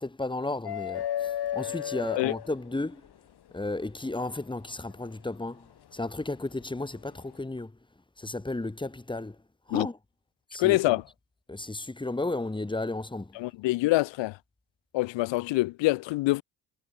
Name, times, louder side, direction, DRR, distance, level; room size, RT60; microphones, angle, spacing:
voice 1, 0.0-3.0 3.5-5.7 5.9-7.7 8.2-9.4 9.7-10.0 10.5-11.0 11.5-13.4, left 2 dB, 10° left, 2.9 m, -33 dB
sound 1, 0.6-3.1 4.7-4.8 6.6-6.8, left 11 dB, 60° left, 2.9 m, -32 dB
voice 2, 10.6-11.0 13.3-14.4 14.9-16.4, left 19 dB, 90° left, 1.4 m, -25 dB
cardioid pair, 95°, 43 cm